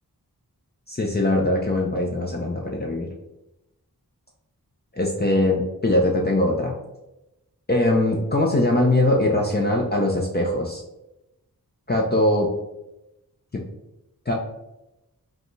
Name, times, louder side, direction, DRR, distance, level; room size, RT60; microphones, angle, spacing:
voice 1, 0.9-3.1 5.0-6.7 7.7-10.8 11.9-12.5 13.5-13.6 14.3-14.4, left 1 dB, 25° left, -2 dB, 0.6 m, -21 dB
5.1 x 2.3 x 3.1 m, 0.93 s
cardioid pair, 40°, 37 cm